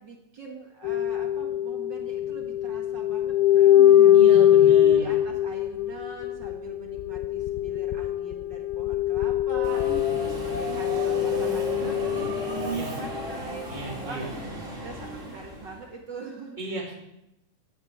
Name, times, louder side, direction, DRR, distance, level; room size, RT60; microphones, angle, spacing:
voice 1, 0.0-4.2 4.5-14.3 14.8-16.6, right 3 dB, 45° right, 0 dB, 1.6 m, -43 dB
sound 1, 0.8-12.8 13.2-13.3, left 11 dB, 90° left, 2.7 m, -22 dB
voice 2, 4.1-5.2 12.7-13.0 13.7-14.3 16.6-16.9, right 1 dB, 15° left, -4 dB, 2.1 m, -34 dB
sound 2, 9.5-11.0, left 9 dB, 65° left, 6.1 m, -39 dB
Subway metro underground, 9.6-15.9, right 2 dB, 25° right, 2.3 m, -34 dB
16.5 x 11.0 x 4.7 m, 0.86 s
omnidirectional pair, 4.4 m